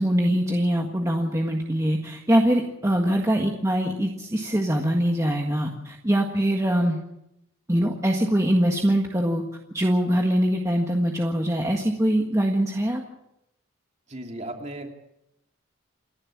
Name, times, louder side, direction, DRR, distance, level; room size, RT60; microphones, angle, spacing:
voice 1, 0.0-7.0 7.7-9.4 9.7-13.0, equal, 15° right, 1 dB, 1.6 m, -23 dB
voice 2, 14.1-14.9, right 1 dB, 30° right, 3 dB, 2.8 m, -36 dB
28.5 x 11.0 x 8.7 m, 0.84 s
head